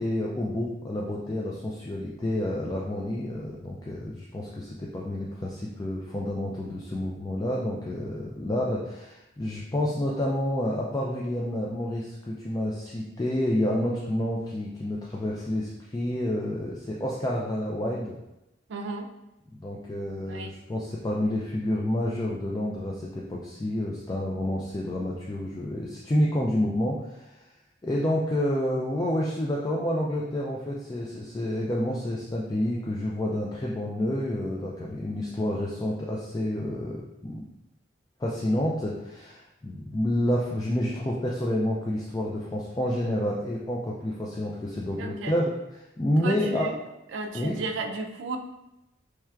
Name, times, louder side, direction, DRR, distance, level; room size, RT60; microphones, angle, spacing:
voice 1, 0.0-18.2 19.6-27.4 27.8-37.5 38.2-46.7 47.3-47.6, left 1 dB, 20° left, -3 dB, 0.3 m, -29 dB
voice 2, 18.7-19.1 20.3-20.5 45.0-45.3 46.2-46.8 47.1-48.4, right 3 dB, 80° right, 4 dB, 0.4 m, -33 dB
4.4 x 3.3 x 2.3 m, 0.92 s
head